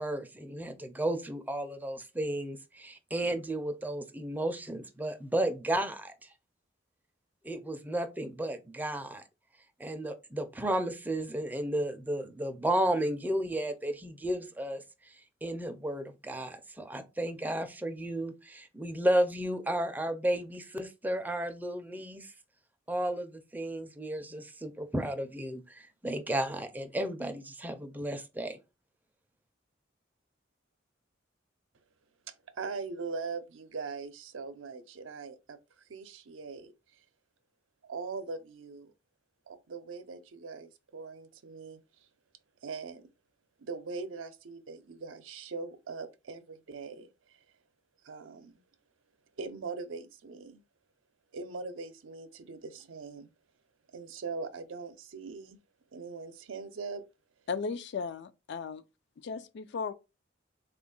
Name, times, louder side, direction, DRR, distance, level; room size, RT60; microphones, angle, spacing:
voice 1, 0.0-6.1 7.4-9.2 9.8-14.8 15.4-22.3 22.9-28.6, right 1 dB, 10° right, 0.4 m, -33 dB
voice 2, 32.3-37.0 37.8-38.9 39.5-42.1 42.6-43.1 43.6-47.4 48.0-48.6 49.4-50.6 51.3-53.3 53.9-55.6 55.9-57.0, right 4 dB, 85° right, 0.5 m, -41 dB
voice 3, 57.5-58.8 59.2-59.9, left 5 dB, 60° left, 0.4 m, -36 dB
3.5 x 2.4 x 3.7 m
head